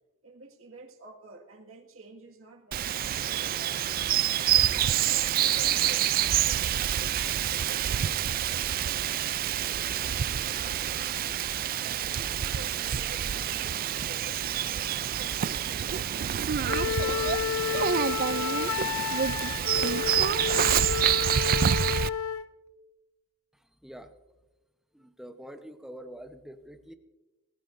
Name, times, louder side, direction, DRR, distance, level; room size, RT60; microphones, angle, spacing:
voice 1, 0.2-4.0 4.5-11.2 11.8-17.7, right 3 dB, 70° right, 1 dB, 1.9 m, -50 dB
Bird vocalization bird call bird song, 2.7-22.1, right 10 dB, 45° right, 0.4 m, -27 dB
Wind instrument woodwind instrument, 16.7-22.5, left 8 dB, 90° left, 0.7 m, -31 dB
voice 2, 23.8-24.1 24.9-26.9, right 1 dB, ahead, 7 dB, 0.9 m, -45 dB
26.0 x 14.5 x 2.6 m, 1.1 s
head